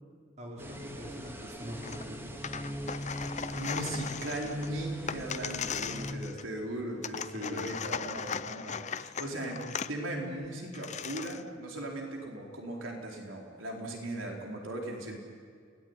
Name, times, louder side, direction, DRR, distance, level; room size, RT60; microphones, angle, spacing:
voice 1, 0.4-2.4 7.3-7.6, equal, 35° right, -1 dB, 4.6 m, -42 dB
sound 1, 0.6-6.1, equal, 10° right, 2.3 m, -41 dB
sound 2, 1.8-2.0 2.4-6.6 7.0-9.9 10.4-10.5 10.7-11.5, left 7 dB, 40° left, 0.7 m, -38 dB
voice 2, 3.5-15.2, right 1 dB, 80° right, 0 dB, 4.5 m, -38 dB
29.5 x 19.5 x 9.9 m, 2.1 s
head